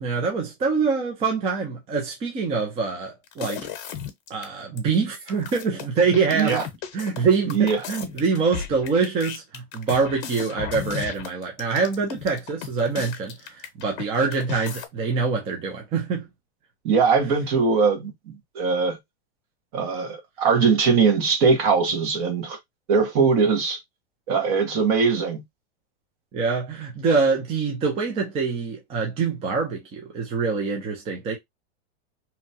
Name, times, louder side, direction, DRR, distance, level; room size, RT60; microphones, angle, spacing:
voice 1, 0.0-3.6 4.3-6.7 6.9-16.3 26.3-31.4, right 4 dB, 20° right, 0.5 m, -25 dB
sound 1, 3.3-4.5 4.8-4.9 5.1-14.1 14.3-14.9, left 9 dB, 55° left, 0.8 m, -35 dB
voice 2, 6.3-6.6 7.5-7.8 16.8-19.0 19.7-22.6 22.9-23.8 24.3-25.4, right 5 dB, 45° right, 1.1 m, -21 dB
2.9 x 2.2 x 2.7 m
supercardioid pair, 150°, 33 cm